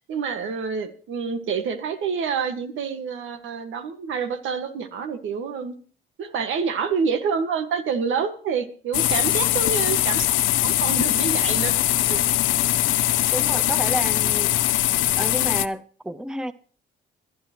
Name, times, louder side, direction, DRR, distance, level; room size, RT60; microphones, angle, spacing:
voice 1, 0.1-5.7 6.2-10.3 10.6-11.8 12.1-12.2, right 6 dB, 80° right, 1.7 m, -27 dB
sound 1, 8.9-15.7, left 15 dB, 80° left, 0.6 m, -21 dB
voice 2, 13.3-14.6 15.2-16.5, right 1 dB, 5° right, 0.6 m, -30 dB
21.5 x 10.5 x 3.0 m
cardioid pair, 90°, 20 cm